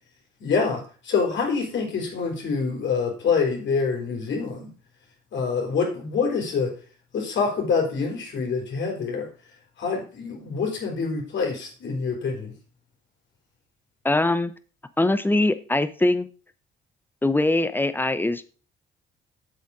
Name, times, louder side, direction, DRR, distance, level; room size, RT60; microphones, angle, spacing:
voice 1, 0.4-4.7 5.3-6.7 7.1-9.3 9.8-12.5, left 5 dB, 65° left, 1 dB, 4.0 m, -26 dB
voice 2, 14.0-14.5 15.0-16.3 17.2-18.4, left 2 dB, 10° left, 12 dB, 0.9 m, -22 dB
7.9 x 7.0 x 4.9 m, 0.36 s
cardioid pair, 90°, 20 cm